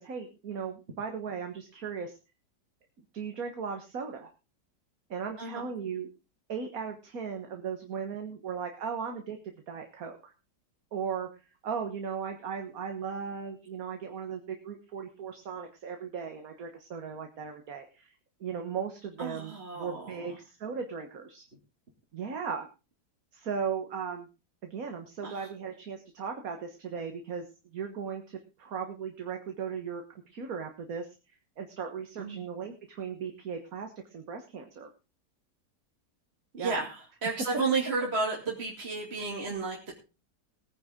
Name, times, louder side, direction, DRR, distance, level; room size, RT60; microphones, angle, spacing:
voice 1, 0.0-2.2 3.1-4.3 5.1-6.1 6.5-9.4 9.7-10.3 10.9-11.3 11.6-18.1 18.4-21.5 22.1-22.7 23.3-24.3 24.6-27.5 27.7-31.1 31.6-34.9 36.6-36.8, right 6 dB, 55° right, 4 dB, 1.8 m, -37 dB
voice 2, 19.2-20.4 25.2-25.5 32.2-32.4 36.5-40.0, right 4 dB, 35° right, -2 dB, 2.9 m, -32 dB
20.0 x 9.6 x 3.7 m, 0.32 s
omnidirectional pair, 1.8 m